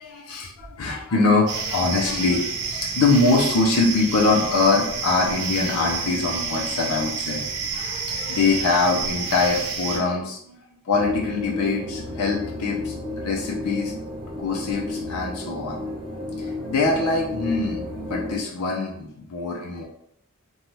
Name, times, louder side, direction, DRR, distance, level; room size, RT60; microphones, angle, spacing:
voice 1, 0.0-7.4 7.7-10.5 10.8-13.9 14.3-15.8 16.4-19.8, left 3 dB, 85° left, -2 dB, 0.5 m, -23 dB
sound 1, 1.5-10.0, right 5 dB, 90° right, 0.6 m, -29 dB
sound 2, 10.9-18.4, left 2 dB, 25° right, 0.5 m, -32 dB
2.7 x 2.2 x 3.0 m, 0.71 s
head